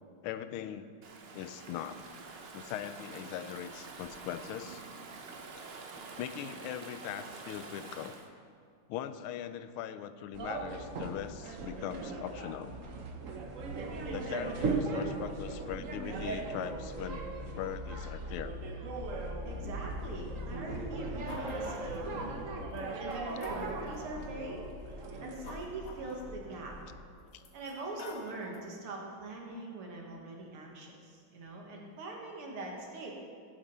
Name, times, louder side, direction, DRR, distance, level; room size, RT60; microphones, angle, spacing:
voice 1, 0.2-0.9 1.3-2.0 2.5-4.8 6.0-8.1 8.9-12.7 14.1-17.2 17.6-18.6 22.0-22.1 27.3-27.4, left 10 dB, 80° left, 11 dB, 1.4 m, -40 dB
Stream / Ocean, 1.0-8.3, right 4 dB, 75° right, 0.5 m, -47 dB
sound 1, 10.3-27.0, right 2 dB, 50° right, 1.0 m, -38 dB
voice 2, 19.4-22.4 23.0-24.6 25.2-26.8 27.5-33.1, right 2 dB, 90° right, -1 dB, 2.5 m, -42 dB
sound 2, 21.3-22.1 22.7-22.8 23.1-24.0 24.9-26.7 27.3-28.8, left 2 dB, 50° left, 1.2 m, -49 dB
17.0 x 7.5 x 4.2 m, 2.2 s
omnidirectional pair, 2.4 m